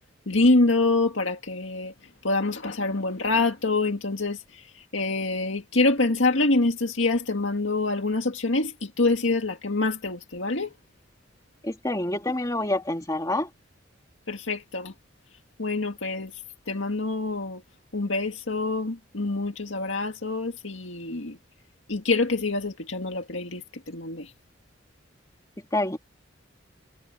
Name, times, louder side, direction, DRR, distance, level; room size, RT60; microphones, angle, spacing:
voice 1, 0.3-1.9 2.2-10.7 14.3-14.9 15.6-16.4 16.7-17.6 17.9-21.4 21.9-24.3, left 2 dB, 80° left, 1.9 m, -26 dB
voice 2, 11.6-13.5 25.7-26.0, left 1 dB, 20° left, 2.2 m, -27 dB
head